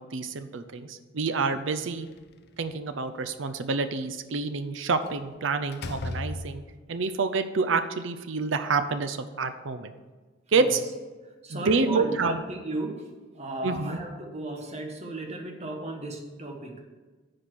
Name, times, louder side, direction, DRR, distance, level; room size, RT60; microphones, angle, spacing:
voice 1, 0.0-2.1 2.6-6.6 6.9-9.9 10.5-10.8 11.5-12.4 13.6-14.0, right 4 dB, 65° right, 9 dB, 0.6 m, -28 dB
Slam, 1.9-2.9 5.0-5.3 5.7-6.9, left 2 dB, 55° left, 0.5 m, -37 dB
voice 2, 11.4-13.0 13.3-16.8, right 2 dB, 35° right, 3 dB, 1.2 m, -35 dB
9.8 x 4.3 x 6.2 m, 1.3 s
head